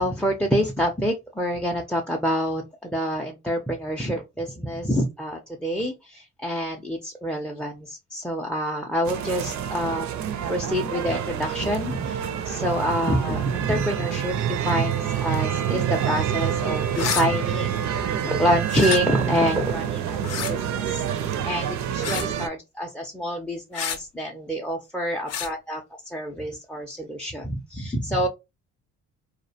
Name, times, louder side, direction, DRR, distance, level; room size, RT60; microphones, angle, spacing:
voice 1, 0.0-10.1 10.5-17.8 18.2-21.0 21.4-28.3, equal, 5° left, 0.4 m, -27 dB
sound 1, 9.0-22.5, right 9 dB, 65° right, 0.5 m, -27 dB
sound 2, 16.9-17.3 18.7-19.0 20.2-20.5 22.0-22.3 23.7-24.0 25.3-25.5, left 8 dB, 55° left, 0.5 m, -28 dB
2.3 x 2.1 x 2.7 m
cardioid pair, 90°, 30 cm